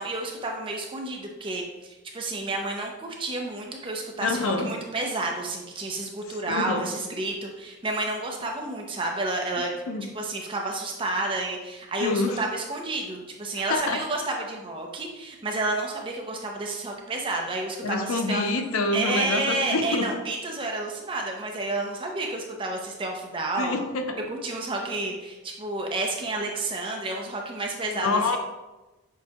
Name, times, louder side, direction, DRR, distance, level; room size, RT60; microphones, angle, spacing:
voice 1, 0.0-9.7 10.1-18.4 18.9-23.7 24.3-28.4, right 2 dB, 25° right, 1 dB, 0.5 m, -30 dB
voice 2, 4.2-4.7 6.5-6.8 9.6-10.0 12.0-12.4 13.7-14.0 17.8-20.1 23.6-24.2 27.9-28.4, left 3 dB, 80° left, 6 dB, 0.5 m, -26 dB
6.4 x 2.2 x 2.8 m, 1.1 s
head